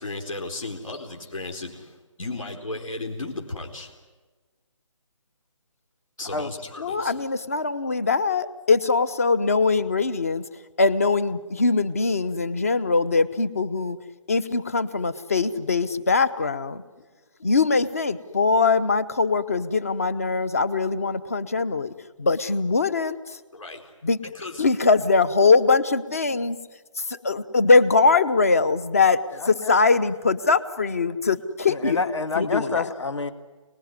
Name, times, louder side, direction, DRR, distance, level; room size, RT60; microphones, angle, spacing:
voice 1, 0.0-1.8 2.2-3.9 6.2-7.1 17.0-17.1 23.5-23.9 24.2-24.7 27.1-27.2, left 2 dB, 75° left, 1 dB, 4.4 m, -35 dB
voice 2, 6.8-10.4 10.8-14.0 14.3-16.8 17.4-21.9 22.2-23.4 24.0-24.2 24.6-26.6 27.0-29.2 29.5-32.0 32.4-32.8, left 4 dB, 25° left, 13 dB, 0.8 m, -22 dB
voice 3, 29.4-29.8 31.7-33.3, left 4 dB, 60° left, 9 dB, 2.1 m, -28 dB
28.5 x 19.5 x 9.6 m, 1.3 s
hypercardioid pair, 175°, 17 cm